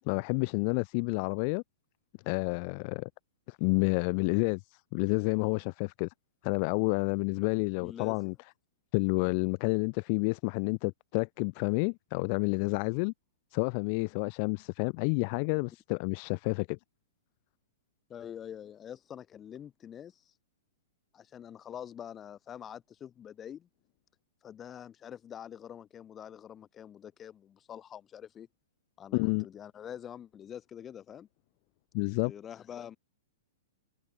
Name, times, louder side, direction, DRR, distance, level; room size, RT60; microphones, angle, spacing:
voice 1, 0.1-1.6 2.3-3.1 3.5-6.1 6.4-8.3 8.9-13.1 13.5-16.8 29.1-29.5 31.9-32.3, left 36 dB, 45° left, 0.8 m, -29 dB
voice 2, 7.8-8.4 18.1-20.3 21.1-23.7 24.4-28.5 29.0-31.3 32.0-33.0, left 9 dB, 20° left, 7.2 m, -46 dB
hypercardioid pair, 125°, 0 cm